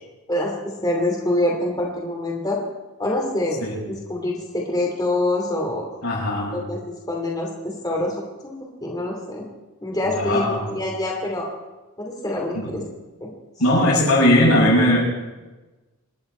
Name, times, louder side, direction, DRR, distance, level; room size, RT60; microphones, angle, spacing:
voice 1, 0.3-2.6 3.0-5.9 6.5-9.5 9.8-11.5 12.0-12.8 13.2-13.3 13.7-13.9, left 1 dB, 20° left, -1 dB, 2.6 m, -26 dB
voice 2, 6.0-6.6 10.0-10.7 12.5-12.7 13.6-15.0, left 1 dB, 90° left, -4 dB, 7.6 m, -19 dB
27.0 x 11.0 x 4.5 m, 1.2 s
head